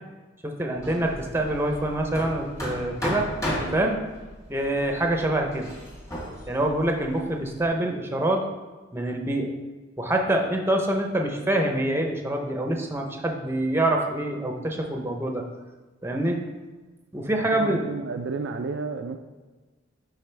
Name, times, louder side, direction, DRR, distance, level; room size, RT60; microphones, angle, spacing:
voice 1, 0.4-3.3 3.7-4.0 4.5-5.7 6.5-8.4 8.9-9.5 10.0-15.4 16.0-16.4 17.1-17.8, right 1 dB, 10° right, 2 dB, 0.7 m, -25 dB
Hammer, 0.8-7.6, equal, 15° left, 1.5 m, -35 dB
voice 2, 17.4-19.2, right 4 dB, 60° right, 6 dB, 0.4 m, -32 dB
11.0 x 4.0 x 3.4 m, 1.3 s
head